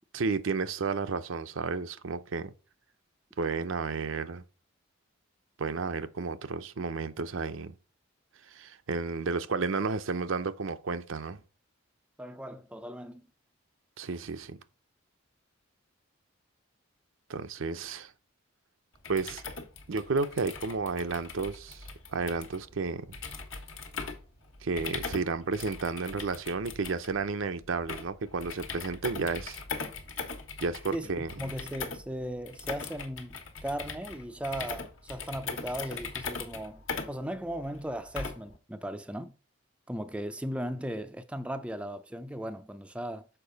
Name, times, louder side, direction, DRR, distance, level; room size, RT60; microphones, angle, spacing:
voice 1, 0.1-2.5 3.4-4.4 5.6-7.7 8.5-11.4 14.0-14.6 17.3-18.1 19.1-19.4 19.9-21.9 22.1-23.1 24.6-29.6 30.6-31.3, right 4 dB, 65° right, 0.6 m, -32 dB
voice 2, 12.2-13.2 30.9-39.3 39.9-43.3, equal, 5° right, 0.4 m, -37 dB
sound 1, 18.9-38.6, left 4 dB, 70° left, 1.4 m, -40 dB
6.8 x 4.8 x 3.9 m
head